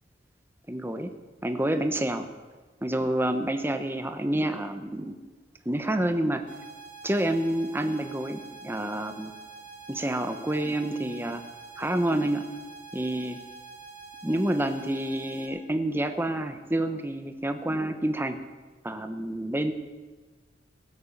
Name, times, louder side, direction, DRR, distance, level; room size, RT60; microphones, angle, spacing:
voice 1, 0.7-1.1 1.4-2.3 2.8-5.1 5.6-6.4 7.0-9.3 9.9-11.4 11.8-12.4 12.9-13.4 14.2-18.4 18.8-19.7, right 1 dB, 10° right, 7 dB, 1.0 m, -28 dB
sound 1, 6.5-15.5, right 4 dB, 45° right, 3.8 m, -46 dB
21.0 x 8.8 x 7.2 m, 1.3 s
head